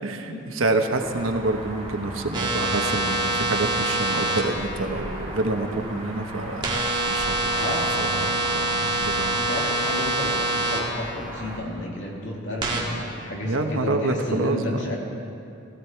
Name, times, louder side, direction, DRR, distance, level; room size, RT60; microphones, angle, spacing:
voice 1, 0.0-6.8 7.1-9.4 13.4-14.8, right 2 dB, 80° right, 5 dB, 1.2 m, -27 dB
sound 1, 1.0-11.6, right 1 dB, 10° left, 4.0 m, -38 dB
sound 2, 2.3-4.4 6.6-10.8 12.6-12.8, right 2 dB, 25° right, 2.2 m, -25 dB
voice 2, 7.5-8.1 9.3-15.0, left 1 dB, 60° left, -2 dB, 2.5 m, -32 dB
17.0 x 15.5 x 4.5 m, 2.6 s
head